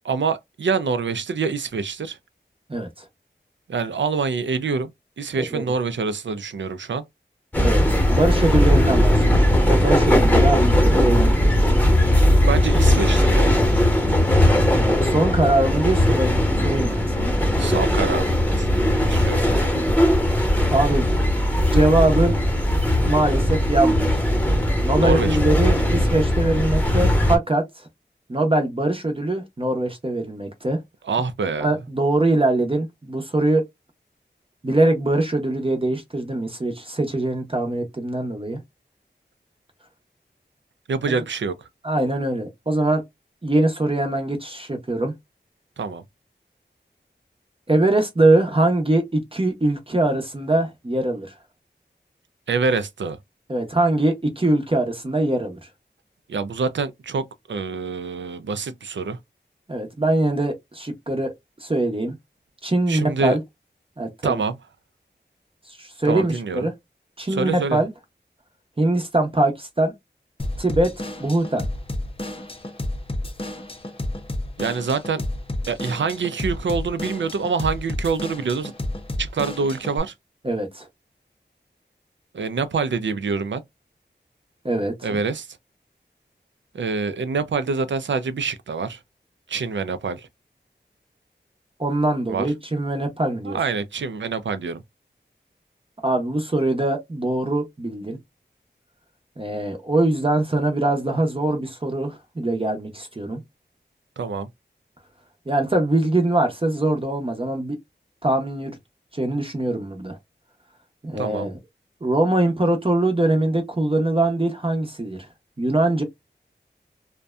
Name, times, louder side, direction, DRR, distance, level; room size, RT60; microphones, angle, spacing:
voice 1, 0.0-2.2 3.7-7.0 12.4-13.6 17.6-18.7 19.0-19.8 25.0-25.4 31.0-31.7 40.9-41.7 45.8-46.0 52.5-53.2 56.3-59.2 62.9-63.4 64.2-64.6 66.0-66.7 67.3-67.8 74.6-75.2 75.7-78.7 79.2-80.1 82.3-83.6 85.0-85.5 86.7-89.0 89.5-90.3 92.3-92.5 93.4-94.8 104.2-104.5 111.2-111.5, right 4 dB, 85° right, 0.4 m, -26 dB
voice 2, 2.7-3.0 5.5-5.6 7.6-7.8 8.1-11.6 14.7-16.3 16.6-17.3 20.7-21.1 21.7-22.4 23.1-24.2 24.8-27.9 28.3-30.8 31.6-33.6 34.6-38.6 41.8-43.0 43.4-45.1 47.7-51.3 53.5-55.6 59.7-61.3 61.6-62.2 62.6-63.4 64.0-64.4 65.7-66.7 67.2-67.9 68.8-69.9 70.6-71.6 80.4-80.9 84.6-85.1 91.8-93.6 96.0-98.2 99.4-103.4 105.5-107.8 108.2-108.7 109.1-110.2 111.0-111.6 112.0-115.2 115.6-116.0, right 2 dB, 30° right, 0.7 m, -22 dB
sound 1, 7.5-27.4, left 1 dB, 10° left, 0.9 m, -19 dB
Drum kit / Drum, 70.4-80.0, left 1 dB, 30° left, 0.5 m, -31 dB
2.6 x 2.1 x 2.2 m
wide cardioid pair, 60°, 19 cm